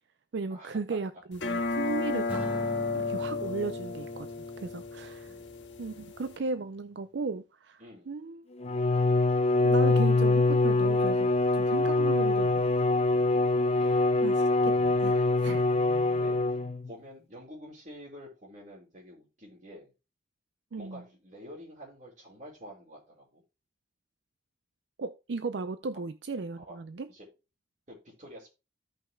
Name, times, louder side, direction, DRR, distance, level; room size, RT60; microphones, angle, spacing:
voice 1, 0.3-2.5 2.9-4.3 4.6-5.3 5.8-8.5 9.6-11.3 11.6-12.6 13.7-15.7 20.7-21.0 25.0-27.1, right 4 dB, 65° right, 0.5 m, -36 dB
sound 1, 1.3-6.4, left 3 dB, 75° left, 1.6 m, -33 dB
Acoustic guitar / Strum, 2.3-5.6, equal, 5° right, 1.9 m, -42 dB
voice 2, 7.8-8.2 11.8-12.0 16.0-16.6 16.9-19.9 20.8-23.4 26.6-26.8 27.1-27.3 27.9-28.5, equal, 45° right, 5.0 m, -48 dB
Bowed string instrument, 8.6-16.9, left 2 dB, 35° left, 0.7 m, -24 dB
15.5 x 5.5 x 2.2 m
head